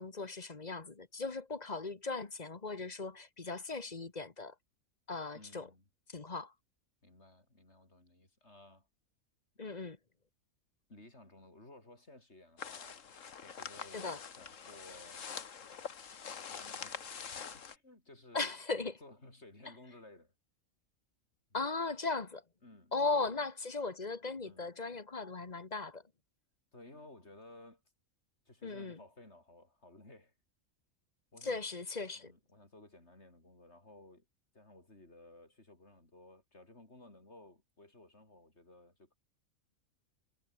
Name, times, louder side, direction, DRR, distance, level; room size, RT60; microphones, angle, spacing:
voice 1, 0.0-4.5 5.1-5.7 6.1-6.5 9.6-10.0 13.9-14.2 18.3-18.9 21.5-22.4 22.9-26.0 28.6-29.0 31.4-32.3, left 3 dB, 30° left, 1.4 m, -37 dB
voice 2, 5.3-5.9 7.0-8.9 10.9-13.1 13.4-15.3 16.5-17.1 17.5-18.6 19.0-20.3 22.6-23.4 24.4-24.7 26.7-27.8 28.5-30.3 31.3-31.6 32.1-34.3 34.5-39.1, left 2 dB, 55° left, 5.9 m, -57 dB
sound 1, 12.6-17.8, left 6 dB, 70° left, 1.8 m, -45 dB
omnidirectional pair, 1.4 m